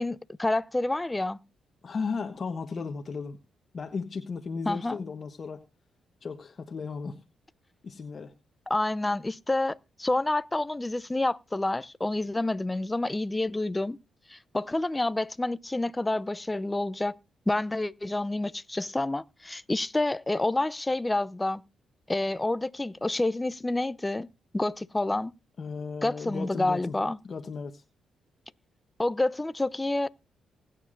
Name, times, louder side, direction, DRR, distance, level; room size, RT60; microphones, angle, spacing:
voice 1, 0.0-1.4 4.7-5.0 8.7-14.0 14.3-17.2 17.5-21.6 22.1-24.3 24.5-25.3 26.0-27.2 29.0-30.1, left 2 dB, 15° left, 0.6 m, -28 dB
voice 2, 1.8-3.4 3.7-5.6 6.2-7.2 7.8-8.3 25.6-26.9 27.3-27.8, left 5 dB, 45° left, 1.3 m, -35 dB
20.5 x 9.4 x 2.6 m
cardioid pair, 65°, 0 cm